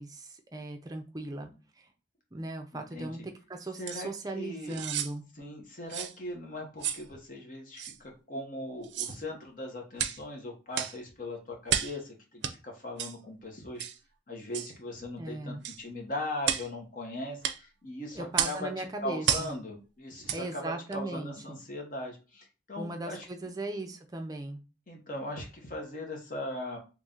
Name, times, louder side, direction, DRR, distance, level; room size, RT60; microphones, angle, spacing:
voice 1, 0.0-1.5 1.8-1.9 2.3-5.2 15.2-15.6 18.1-19.5 20.3-21.6 22.8-24.6, right 2 dB, 20° right, 5 dB, 0.5 m, -38 dB
voice 2, 2.7-3.1 3.8-4.8 5.4-13.9 14.3-23.3 24.9-26.8, left 1 dB, 45° left, 1 dB, 1.0 m, -39 dB
sound 1, 3.9-4.0 4.7-5.1 5.9-6.1 6.8-7.0 7.8-8.0 8.8-9.2 10.0-10.2 10.7-11.0 11.7-12.0 12.4-12.5 13.0-13.2 13.8-14.0 14.5-14.7 15.6-15.8 16.4-16.7 17.4-17.6 18.3-18.6 19.2-19.5 20.2-20.4 20.9-21.0, right 9 dB, 75° right, 0.4 m, -31 dB
3.1 x 2.7 x 3.7 m, 0.32 s
head